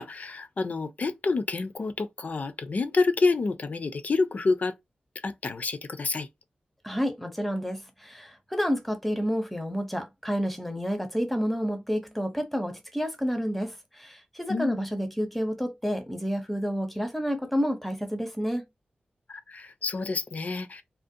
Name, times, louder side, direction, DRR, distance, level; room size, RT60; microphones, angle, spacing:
voice 1, 0.0-4.7 5.2-6.3 14.5-14.9 19.3-20.8, left 3 dB, 55° left, 0.4 m, -28 dB
voice 2, 6.8-18.6, equal, 5° left, 0.6 m, -29 dB
2.5 x 2.1 x 2.6 m
wide cardioid pair, 90°, 3 cm